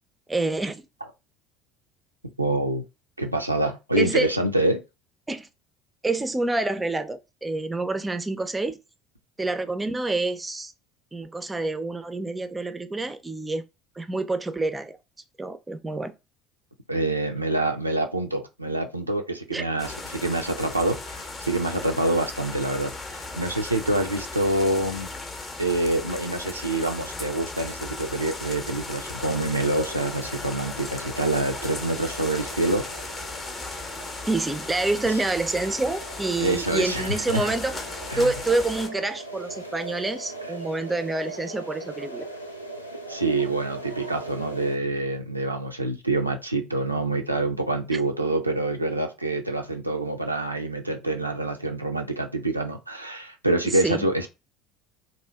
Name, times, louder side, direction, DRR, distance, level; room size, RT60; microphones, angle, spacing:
voice 1, 0.3-0.8 4.0-4.3 5.3-5.5 6.0-8.8 9.4-10.7 11.1-13.6 14.0-15.0 15.4-16.1 19.5-19.6 34.3-37.8 38.2-42.3 47.9-48.0 53.7-54.1, right 2 dB, 15° right, 0.4 m, -27 dB
voice 2, 2.4-2.8 3.2-4.8 16.9-25.1 25.6-32.9 35.1-35.2 36.4-37.5 38.1-38.3 43.1-54.3, right 2 dB, 85° right, 0.3 m, -26 dB
sound 1, 19.8-38.9, left 3 dB, 25° left, 0.6 m, -36 dB
sound 2, 29.6-44.8, right 2 dB, 85° left, 0.3 m, -40 dB
2.6 x 2.1 x 3.2 m
figure-of-eight pair, 65°, 0 cm